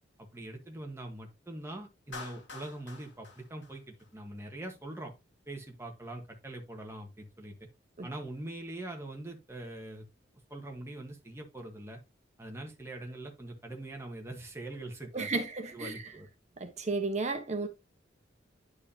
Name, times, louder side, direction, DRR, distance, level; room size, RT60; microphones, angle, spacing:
voice 1, 0.2-5.1 5.5-7.7 8.0-10.0 10.5-12.0 12.4-16.3, right 1 dB, 15° right, 1.4 m, -43 dB
Clapping, 2.1-4.4, left 4 dB, 80° left, 2.1 m, -47 dB
voice 2, 15.1-16.0 16.6-17.7, right 3 dB, 40° right, 1.2 m, -33 dB
10.5 x 4.8 x 2.9 m
head